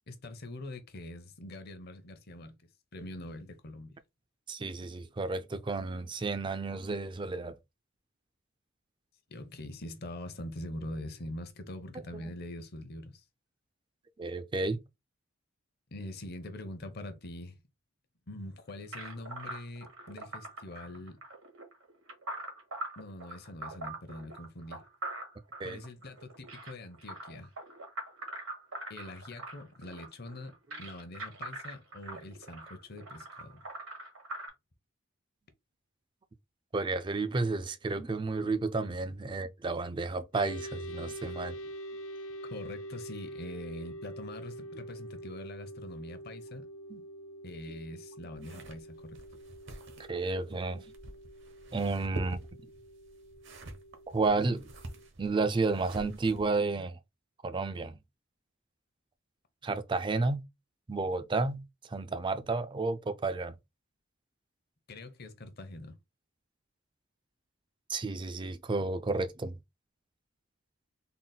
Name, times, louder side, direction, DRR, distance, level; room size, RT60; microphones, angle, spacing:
voice 1, 0.1-2.5 2.9-4.0 9.3-13.2 15.9-17.6 18.3-21.2 23.0-24.8 25.6-27.5 28.9-33.6 42.4-46.7 47.4-49.2 64.9-66.0, left 1 dB, 50° left, 0.7 m, -44 dB
voice 2, 4.5-7.6 14.2-14.8 25.6-25.8 36.7-41.6 46.9-47.0 50.1-50.8 51.7-52.6 54.1-54.7 55.2-57.0 57.4-58.0 59.6-60.4 60.9-63.6 67.9-69.6, right 3 dB, 25° right, 0.4 m, -32 dB
sound 1, 18.9-34.5, right 2 dB, 85° right, 1.6 m, -43 dB
sound 2, 40.3-55.1, right 1 dB, 85° left, 0.6 m, -45 dB
sound 3, 48.4-56.6, right 2 dB, 60° right, 0.8 m, -47 dB
3.9 x 2.1 x 3.9 m
head